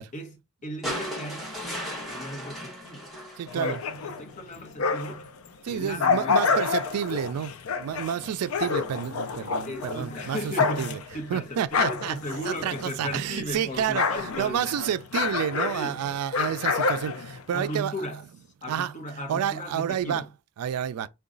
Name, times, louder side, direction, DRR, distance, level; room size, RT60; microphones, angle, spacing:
voice 1, 0.1-3.1 3.5-5.3 5.7-6.6 9.6-14.7 15.7-16.0 17.5-18.3 18.6-20.3, equal, 35° left, 0.9 m, -36 dB
sound 1, 0.8-4.1 5.5-5.6, equal, ahead, 1.1 m, -36 dB
voice 2, 3.4-3.8 5.6-11.0 11.3-12.2 12.5-12.7 13.0-14.1 14.4-17.9 18.7-18.9 19.3-20.2 20.6-21.1, right 9 dB, 85° right, 0.3 m, -29 dB
sound 2, 3.5-5.3 5.7-13.3 13.5-17.8, left 5 dB, 70° left, 0.4 m, -28 dB
3.9 x 2.2 x 3.8 m
head